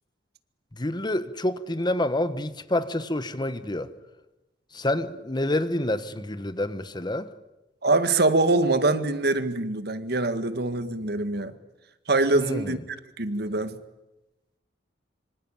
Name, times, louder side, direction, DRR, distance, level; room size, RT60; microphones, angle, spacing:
voice 1, 0.7-3.9 4.7-7.3 12.3-12.8, left 1 dB, 25° left, 1.3 m, -28 dB
voice 2, 7.8-11.5 12.1-12.8 13.2-13.8, right 2 dB, 60° right, 1.9 m, -24 dB
26.0 x 25.5 x 8.9 m
head